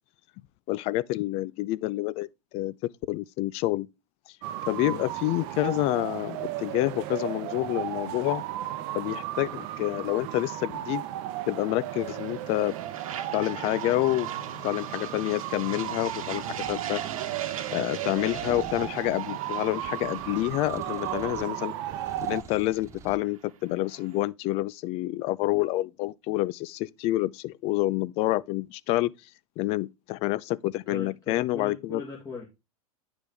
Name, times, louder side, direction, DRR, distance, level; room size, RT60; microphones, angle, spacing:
voice 1, 0.7-3.9 4.7-8.4 8.9-11.0 11.5-12.7 13.3-14.3 14.6-16.4 16.7-17.0 17.7-21.7 22.2-29.1 29.6-32.0, left 17 dB, 35° left, 0.4 m, -28 dB
sound 1, 4.4-22.4, right 13 dB, 45° right, 0.8 m, -35 dB
sound 2, 9.4-24.3, right 8 dB, 70° right, 1.2 m, -43 dB
sound 3, 16.6-17.1 18.2-19.3 19.8-21.6 21.9-23.2, right 5 dB, 15° right, 0.5 m, -47 dB
voice 2, 30.9-32.5, left 4 dB, 20° left, 1.7 m, -39 dB
9.1 x 5.1 x 3.4 m
hypercardioid pair, 115°, 18 cm